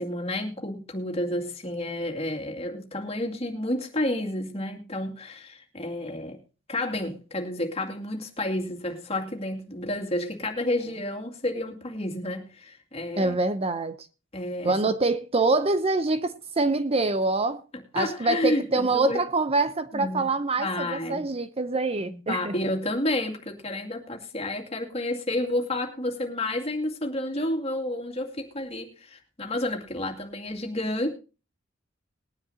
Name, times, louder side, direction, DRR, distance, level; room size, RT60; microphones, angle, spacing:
voice 1, 0.0-6.4 6.7-13.4 14.3-14.9 17.9-19.2 19.9-20.3 20.6-21.3 22.0-31.1, left 1 dB, 30° left, 2.5 m, -30 dB
voice 2, 13.2-14.0 14.6-17.6 17.9-22.5, right 3 dB, 30° right, 0.7 m, -25 dB
21.0 x 9.9 x 2.8 m
head